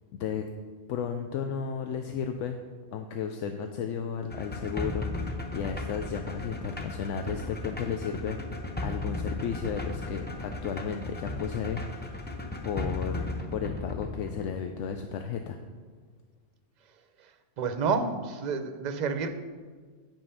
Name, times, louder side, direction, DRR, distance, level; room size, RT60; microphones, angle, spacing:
voice 1, 0.1-0.4 0.9-2.6 2.9-12.3 12.7-15.6, left 7 dB, 80° left, 6 dB, 0.9 m, -34 dB
sound 1, 4.3-14.5, left 2 dB, 10° left, 0.5 m, -36 dB
voice 2, 17.6-19.3, right 5 dB, 45° right, 8 dB, 0.6 m, -29 dB
8.9 x 5.5 x 5.5 m, 1.6 s
omnidirectional pair, 1.3 m